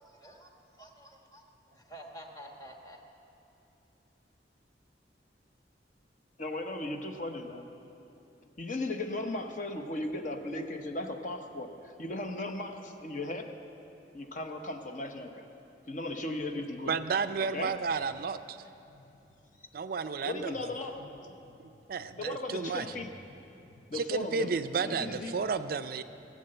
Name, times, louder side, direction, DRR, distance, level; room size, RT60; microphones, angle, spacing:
voice 1, 0.0-3.0, equal, 20° left, 2 dB, 1.3 m, -50 dB
voice 2, 6.4-7.7 8.6-13.5 14.1-15.4 15.9-16.9 17.5-17.7 18.9-19.1 20.2-21.6 22.1-23.1 23.6-25.4, left 2 dB, 45° left, 5 dB, 0.9 m, -37 dB
voice 3, 16.9-18.6 19.7-20.5 21.6-22.9 23.9-26.0, right 5 dB, 55° right, 11 dB, 0.4 m, -32 dB
18.0 x 7.6 x 7.7 m, 2.9 s
head